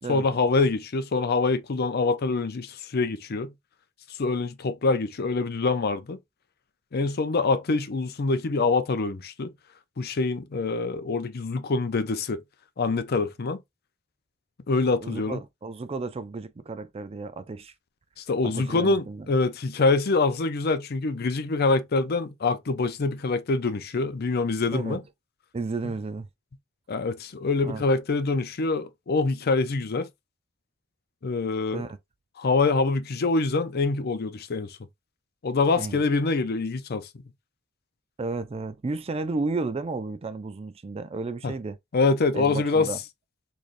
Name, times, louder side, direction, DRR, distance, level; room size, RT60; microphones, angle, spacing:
voice 1, 0.1-3.5 4.2-6.2 6.9-9.5 10.0-12.4 12.8-13.6 14.7-15.4 18.2-25.0 26.9-30.1 31.2-31.9 32.4-34.8 35.4-37.1 41.4-41.5 41.9-42.9, left 3 dB, 50° left, 0.5 m, -25 dB
voice 2, 14.9-17.7 18.4-19.3 24.7-25.0 25.5-26.3 27.6-27.8 31.7-32.0 35.8-36.0 38.2-41.8 42.3-43.0, right 3 dB, 30° right, 0.4 m, -33 dB
3.8 x 3.3 x 2.5 m
head